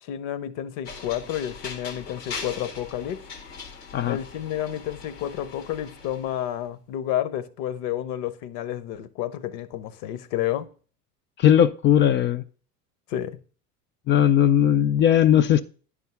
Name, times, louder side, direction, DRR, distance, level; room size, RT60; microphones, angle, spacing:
voice 1, 0.0-3.2 4.1-10.7 13.1-13.4, left 11 dB, 55° left, 0.9 m, -30 dB
sound 1, 0.9-6.5, left 5 dB, 85° left, 1.7 m, -40 dB
voice 2, 11.4-12.4 14.1-15.6, left 10 dB, 30° left, 0.3 m, -18 dB
10.5 x 3.7 x 5.6 m
hypercardioid pair, 75°, 46 cm